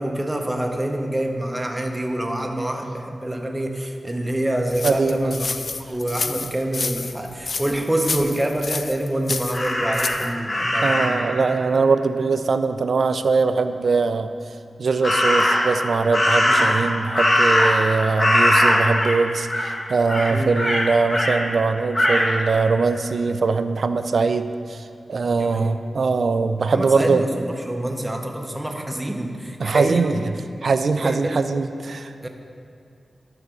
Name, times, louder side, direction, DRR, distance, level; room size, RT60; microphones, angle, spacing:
voice 1, 0.0-5.6 5.9-11.5 16.5-16.7 20.3-20.5 25.3-25.7 26.7-30.1 31.0-31.4 32.2-32.3, right 1 dB, 15° right, 3 dB, 0.7 m, -26 dB
sound 1, 4.7-10.3, left 3 dB, 50° left, 0.4 m, -29 dB
voice 2, 4.8-5.4 10.8-14.3 14.8-27.2 29.6-30.1 30.6-32.1, right 4 dB, 65° right, 10 dB, 0.4 m, -21 dB
Crow, 9.5-11.3 15.0-15.8 16.1-17.9 18.2-19.2 19.5-19.8 20.1-21.4 21.9-22.3, left 1 dB, 30° left, 1.1 m, -20 dB
11.5 x 3.9 x 6.0 m, 2.4 s
wide cardioid pair, 120°, 0 cm